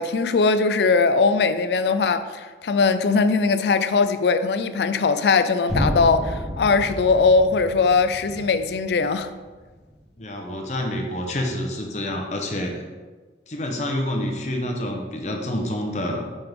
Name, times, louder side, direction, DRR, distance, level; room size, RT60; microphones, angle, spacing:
voice 1, 0.0-9.3, left 4 dB, 75° left, 0.4 m, -20 dB
sound 1, 5.7-9.6, equal, ahead, 1.9 m, -30 dB
voice 2, 10.2-12.7 13.5-16.2, left 1 dB, 40° left, 0.9 m, -27 dB
5.7 x 5.5 x 3.6 m
head